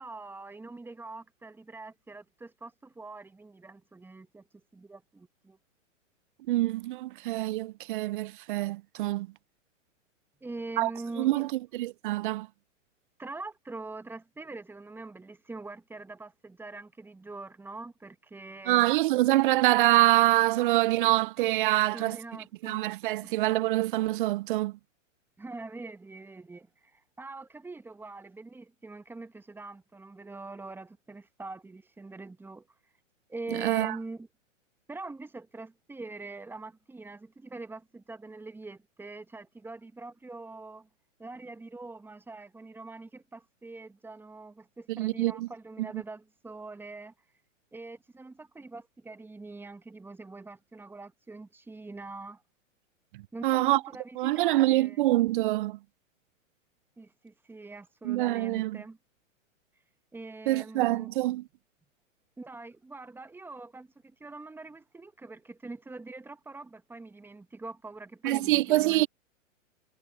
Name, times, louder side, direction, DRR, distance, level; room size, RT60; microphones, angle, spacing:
voice 1, 0.0-5.6 10.4-11.5 13.2-18.9 21.9-22.8 23.2-23.3 25.4-32.7 33.3-34.3 34.9-40.9 41.2-47.1 47.7-52.4 53.3-55.0 57.0-59.0 60.1-61.1 62.4-69.1, right 3 dB, 5° right, 1.1 m, -44 dB
voice 2, 6.5-9.3 10.8-10.9 11.2-12.5 18.7-22.2 22.6-24.8 33.5-34.0 44.9-45.5 45.8-45.9 53.1-53.8 54.2-55.8 58.0-58.8 60.5-61.4 68.2-69.1, right 17 dB, 45° right, 0.4 m, -25 dB
hypercardioid pair, 125°, 39 cm